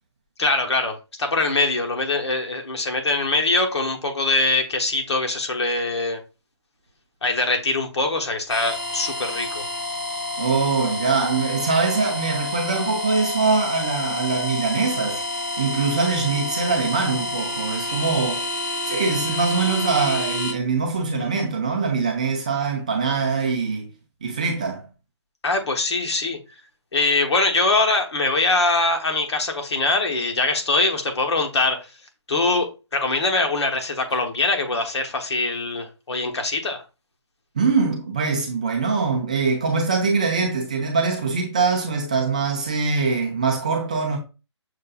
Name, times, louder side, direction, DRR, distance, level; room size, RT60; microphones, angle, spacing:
voice 1, 0.4-6.2 7.2-9.7 25.4-26.4 26.9-31.9 32.3-36.8, left 3 dB, 70° left, 1.1 m, -23 dB
sound 1, 8.5-20.5, left 2 dB, 40° left, 1.0 m, -29 dB
voice 2, 10.4-15.2 15.6-18.5 18.9-23.9 24.2-24.8 37.6-44.2, right 4 dB, 15° right, 0.4 m, -23 dB
6.5 x 2.5 x 2.3 m
hypercardioid pair, 170°, 15 cm